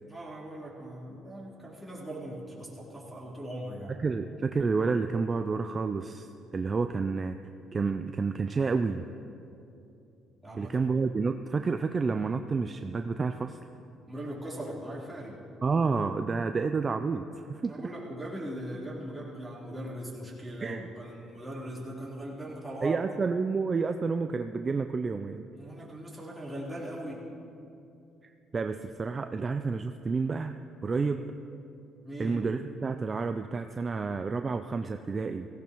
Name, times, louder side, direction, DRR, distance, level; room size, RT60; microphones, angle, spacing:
voice 1, 0.0-4.0 10.4-10.7 14.1-15.4 17.6-23.0 25.6-27.3 30.9-31.3 32.0-32.4, right 1 dB, ahead, -7 dB, 3.7 m, -40 dB
voice 2, 4.0-7.4 7.7-9.0 10.6-13.6 15.6-17.2 17.5-17.8 20.6-20.9 22.8-25.4 28.5-30.6 30.8-31.2 32.2-35.5, right 4 dB, 35° right, 8 dB, 0.4 m, -29 dB
17.0 x 16.5 x 3.1 m, 2.7 s
cardioid pair, 90°, 0 cm